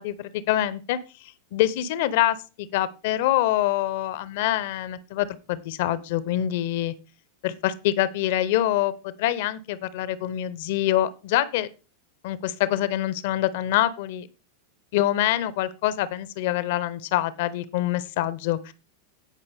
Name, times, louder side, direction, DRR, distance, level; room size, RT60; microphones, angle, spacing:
voice 1, 0.0-6.9 7.4-11.7 12.2-14.3 14.9-18.7, left 13 dB, 50° left, 0.8 m, -25 dB
17.0 x 5.6 x 3.5 m
figure-of-eight pair, 90°, 0 cm